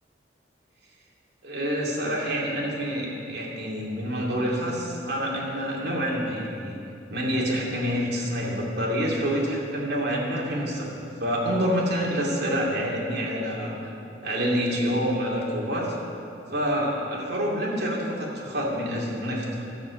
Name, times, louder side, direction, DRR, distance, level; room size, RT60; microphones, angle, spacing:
voice 1, 1.4-6.8 7.1-13.7 14.2-15.9 16.5-19.6, equal, 60° right, -3 dB, 2.5 m, -27 dB
12.5 x 6.8 x 8.1 m, 2.7 s
head